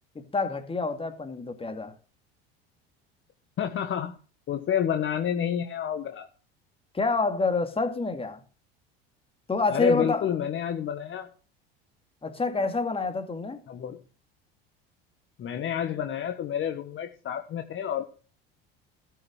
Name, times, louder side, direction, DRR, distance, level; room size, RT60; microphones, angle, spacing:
voice 1, 0.2-1.9 6.9-8.4 9.5-10.3 12.2-13.6, left 3 dB, 20° left, 2.0 m, -27 dB
voice 2, 3.6-4.1 4.5-6.3 9.7-11.3 13.7-14.0 15.4-18.0, left 9 dB, 40° left, 1.3 m, -29 dB
13.0 x 5.8 x 6.4 m
hypercardioid pair, 80°, 30 cm